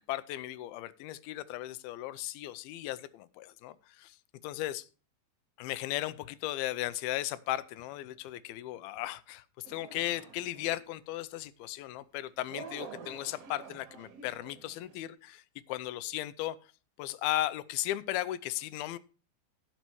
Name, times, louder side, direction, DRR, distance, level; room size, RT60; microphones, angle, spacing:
voice 1, 0.0-4.2 4.4-4.9 5.6-16.6 17.0-19.0, left 15 dB, 85° left, 2.5 m, -36 dB
sound 1, 9.6-10.9 12.5-15.0, right 6 dB, 60° right, 1.7 m, -48 dB
16.0 x 5.5 x 4.6 m
omnidirectional pair, 4.3 m